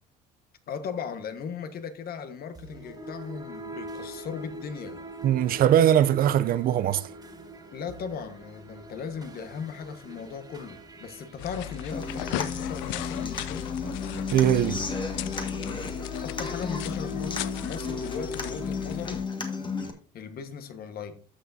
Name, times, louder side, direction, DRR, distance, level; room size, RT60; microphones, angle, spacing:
voice 1, 0.7-5.0 7.7-13.6 16.2-19.3 20.1-21.2, left 6 dB, 55° left, 1.4 m, -37 dB
sound 1, 2.5-14.9, right 2 dB, 20° right, 2.1 m, -44 dB
voice 2, 5.2-7.1 14.3-14.9, right 10 dB, 50° right, 0.5 m, -21 dB
sound 2, 11.4-19.3, left 13 dB, 75° left, 0.5 m, -37 dB
Human voice / Acoustic guitar, 11.9-19.9, left 4 dB, 25° left, 1.6 m, -33 dB
13.5 x 5.9 x 2.7 m
supercardioid pair, 95°, 19 cm